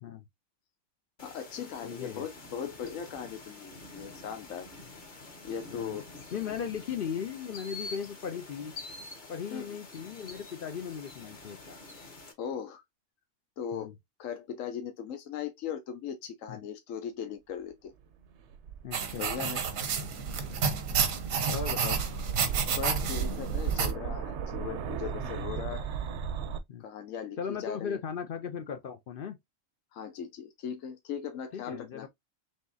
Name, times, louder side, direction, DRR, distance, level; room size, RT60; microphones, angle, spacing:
voice 1, 1.2-4.7 5.4-6.0 9.5-9.8 12.4-12.8 13.6-13.9 14.2-17.9 19.2-19.6 22.4-25.9 26.8-28.0 29.9-32.1, left 8 dB, 80° left, 1.1 m, -39 dB
sound 1, 1.2-12.3, left 3 dB, 40° left, 1.2 m, -47 dB
voice 2, 1.8-2.3 5.7-6.0 6.3-8.7 9.3-11.8 13.7-13.9 16.5-16.6 18.8-19.5 20.6-20.7 21.4-22.0 24.6-24.7 25.2-25.3 26.7-26.8 27.4-29.4 31.5-32.1, left 7 dB, 60° left, 0.6 m, -37 dB
sound 2, 18.2-26.6, right 7 dB, 65° right, 0.9 m, -36 dB
sound 3, 18.9-23.9, right 6 dB, 85° right, 1.3 m, -31 dB
5.4 x 3.1 x 2.6 m
omnidirectional pair, 1.3 m